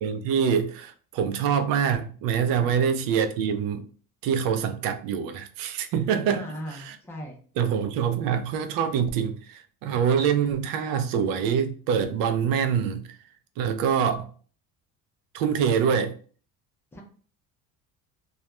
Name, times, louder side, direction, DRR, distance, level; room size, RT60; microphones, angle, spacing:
voice 1, 0.0-3.8 4.2-6.5 6.9-7.0 7.6-13.0 13.6-14.3 15.3-16.2, right 7 dB, 70° right, 0.5 m, -25 dB
voice 2, 6.3-7.4 16.9-17.0, equal, 5° left, 0.3 m, -38 dB
2.3 x 2.1 x 2.9 m
cardioid pair, 170°, 36 cm